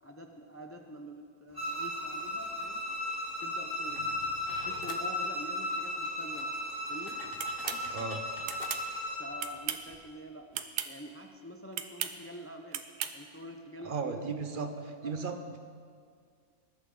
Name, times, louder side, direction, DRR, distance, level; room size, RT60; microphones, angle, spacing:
voice 1, 0.0-2.8 3.4-4.0 4.6-6.5 6.9-7.2 8.7-8.8 9.2-10.5 10.8-12.8 13.1-14.2 14.6-14.7, equal, 20° left, 4 dB, 0.4 m, -46 dB
Bowed string instrument, 1.5-9.3, left 1 dB, 15° right, 3.4 m, -35 dB
sound 1, 3.9-5.1 5.9-6.0 6.3-8.8 9.6-9.7 9.9-10.1, left 4 dB, 40° left, 1.0 m, -48 dB
sound 2, 7.4-7.8 8.5-8.8 9.4-9.9 10.5-10.9 11.7-12.1 12.7-13.1, right 10 dB, 85° right, 1.3 m, -35 dB
voice 2, 7.9-8.2 13.8-14.7 15.0-15.6, right 5 dB, 40° right, 6 dB, 0.9 m, -35 dB
20.0 x 11.5 x 3.9 m, 2.1 s
omnidirectional pair, 1.7 m